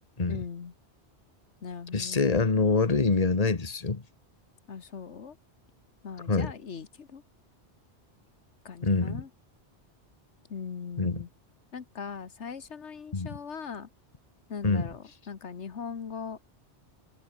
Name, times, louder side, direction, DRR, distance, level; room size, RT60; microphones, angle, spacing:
voice 1, 0.3-0.7 1.6-2.3 4.7-5.4 6.0-7.2 8.7-9.3 10.5-11.3 11.7-13.9 14.5-16.4, left 6 dB, 85° left, 1.7 m, -40 dB
voice 2, 1.9-4.0 6.3-6.5 8.8-9.2 11.0-11.2 13.1-13.3 14.6-14.9, left 4 dB, 35° left, 1.6 m, -25 dB
omnidirectional pair, 1.2 m